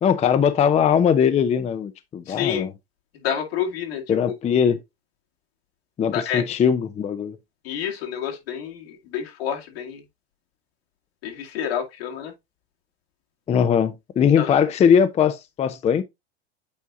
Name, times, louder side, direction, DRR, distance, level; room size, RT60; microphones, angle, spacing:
voice 1, 0.0-2.7 4.1-4.8 6.0-7.4 13.5-16.0, left 7 dB, 20° left, 0.5 m, -20 dB
voice 2, 2.3-2.7 3.2-4.2 6.1-6.4 7.6-10.0 11.2-12.3 14.4-14.6, left 9 dB, 75° left, 2.2 m, -29 dB
8.5 x 4.5 x 2.5 m
hypercardioid pair, 105°, 31 cm